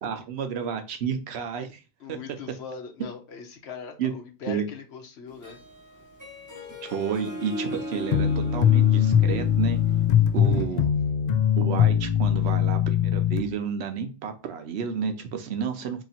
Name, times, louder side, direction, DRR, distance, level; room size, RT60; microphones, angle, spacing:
voice 1, 0.0-1.8 2.1-2.2 4.0-4.1 4.5-4.7 6.9-9.8 10.3-10.9 11.6-16.0, right 6 dB, 85° right, 7 dB, 1.0 m, -31 dB
voice 2, 2.0-5.6 10.5-10.9, left 6 dB, 85° left, 4 dB, 1.1 m, -41 dB
Harp, 5.3-10.8, equal, 20° right, 0.8 m, -37 dB
sound 1, 8.1-13.4, left 9 dB, 55° left, 0.5 m, -21 dB
3.1 x 2.9 x 4.1 m, 0.31 s
omnidirectional pair, 1.1 m